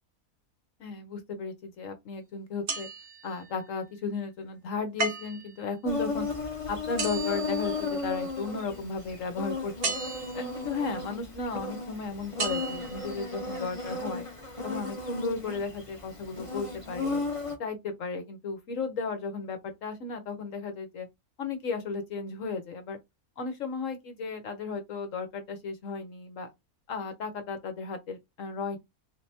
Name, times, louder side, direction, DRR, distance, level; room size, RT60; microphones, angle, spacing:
voice 1, 0.8-2.9 3.2-6.3 6.7-9.9 10.3-14.2 14.6-17.2 17.6-21.1 21.4-23.0 23.4-26.5 26.9-28.8, left 4 dB, 65° left, 1.2 m, -35 dB
sound 1, 2.7-3.7 5.0-5.6 7.0-8.3 9.8-10.6 12.4-13.1 13.7-13.8, right 3 dB, 45° right, 1.0 m, -35 dB
Insect, 5.9-17.6, left 3 dB, 25° left, 0.9 m, -35 dB
3.7 x 3.2 x 2.8 m
omnidirectional pair, 1.5 m